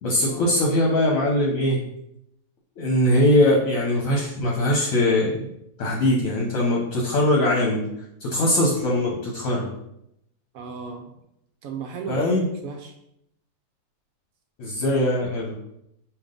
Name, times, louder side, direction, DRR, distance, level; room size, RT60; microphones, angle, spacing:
voice 1, 0.0-1.8 2.8-5.5 5.8-7.8 8.2-9.7 12.1-12.4 14.6-15.5, left 1 dB, 60° left, -2 dB, 1.1 m, -21 dB
voice 2, 10.5-11.1 11.6-12.9, right 5 dB, 70° right, 3 dB, 0.9 m, -35 dB
5.2 x 2.7 x 3.7 m, 0.79 s
omnidirectional pair, 1.8 m